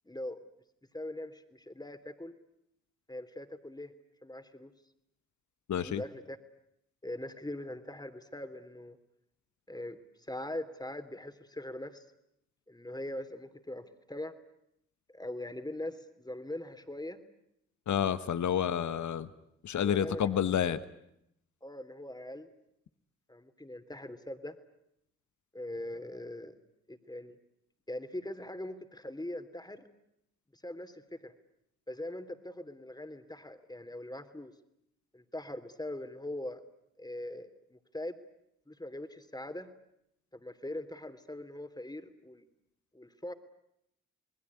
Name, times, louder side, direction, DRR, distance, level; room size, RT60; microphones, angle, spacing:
voice 1, 0.0-0.4 0.9-2.3 3.1-3.9 4.2-4.7 5.8-6.4 7.0-9.0 9.7-10.0 10.3-12.0 12.7-14.3 15.1-17.2 19.7-20.8 21.6-22.5 23.3-24.6 25.5-26.5 26.9-27.4 27.9-29.8 30.5-31.3 31.9-34.5 35.1-36.6 37.0-38.1 38.7-39.7 40.3-42.4 42.9-43.3, left 1 dB, 10° left, 10 dB, 3.2 m, -41 dB
voice 2, 5.7-6.0 17.9-19.3 19.6-20.8, left 9 dB, 60° left, 14 dB, 1.4 m, -29 dB
27.5 x 20.5 x 9.7 m, 0.77 s
hypercardioid pair, 40°, 33 cm